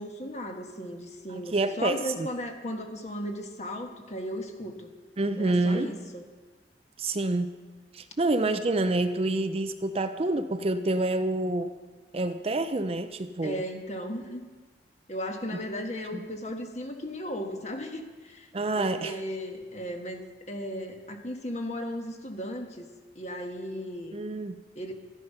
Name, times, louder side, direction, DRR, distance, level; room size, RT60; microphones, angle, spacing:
voice 1, 0.0-4.9 5.4-6.2 13.4-14.4 15.1-18.5 18.7-22.8 23.1-24.2 24.7-24.9, equal, 40° left, 3 dB, 1.5 m, -36 dB
voice 2, 1.5-2.3 5.2-5.9 7.0-7.5 7.9-11.7 12.1-13.6 16.1-16.2 18.5-19.1 24.1-24.6, right 2 dB, 35° right, 9 dB, 0.5 m, -27 dB
13.5 x 11.0 x 5.6 m, 1.3 s
head